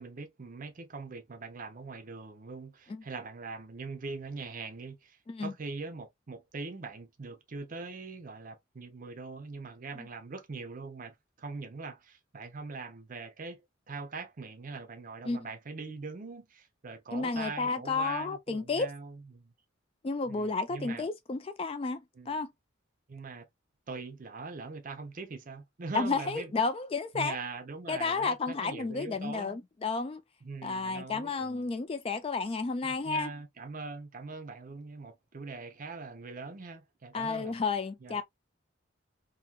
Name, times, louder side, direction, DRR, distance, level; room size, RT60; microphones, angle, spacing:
voice 1, 0.0-19.5 20.3-21.1 22.1-22.3 23.1-23.5 23.9-26.5 27.1-29.6 30.4-31.7 32.8-37.6 38.0-38.2, right 4 dB, 40° right, 0.6 m, -42 dB
voice 2, 17.1-18.9 20.0-22.5 25.9-27.4 27.9-30.2 30.6-33.3 37.1-38.2, left 4 dB, 30° left, 0.3 m, -32 dB
2.8 x 2.6 x 2.2 m
head